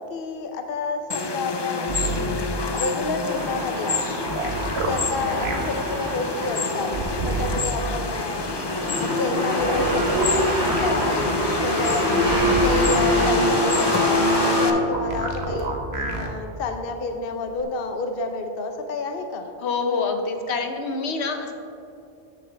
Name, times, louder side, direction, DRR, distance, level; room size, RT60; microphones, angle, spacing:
voice 1, 0.0-4.0 4.8-6.9 7.2-8.4 9.0-19.5, left 3 dB, 65° left, 5 dB, 0.9 m, -29 dB
sound 1, 1.1-14.7, left 4 dB, 35° left, 0.4 m, -29 dB
sound 2, 1.9-2.3 4.3-5.6 6.9-7.6 9.6-10.9 12.3-12.9 14.9-16.3 17.6-17.7, right 3 dB, 75° right, 1.3 m, -29 dB
sound 3, 3.2-14.7, equal, 20° right, 2.9 m, -25 dB
voice 2, 19.6-21.5, left 4 dB, 85° left, 5 dB, 1.2 m, -26 dB
14.0 x 9.1 x 3.4 m, 2.7 s
omnidirectional pair, 1.1 m